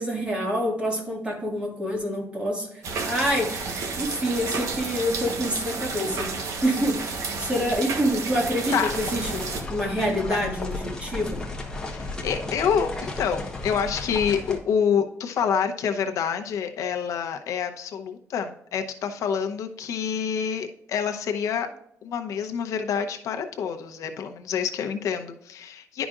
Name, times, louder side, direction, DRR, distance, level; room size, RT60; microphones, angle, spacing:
voice 1, 0.0-9.4 9.7-11.4, equal, 20° right, -1 dB, 1.9 m, -27 dB
sound 1, 2.8-9.6, right 4 dB, 70° right, 1.1 m, -31 dB
sound 2, 8.9-14.6, left 3 dB, 15° left, 1.0 m, -34 dB
voice 2, 11.8-21.7 22.0-26.1, left 7 dB, 80° left, 5 dB, 0.8 m, -27 dB
11.0 x 5.0 x 2.5 m, 0.71 s
wide cardioid pair, 170°, 6 cm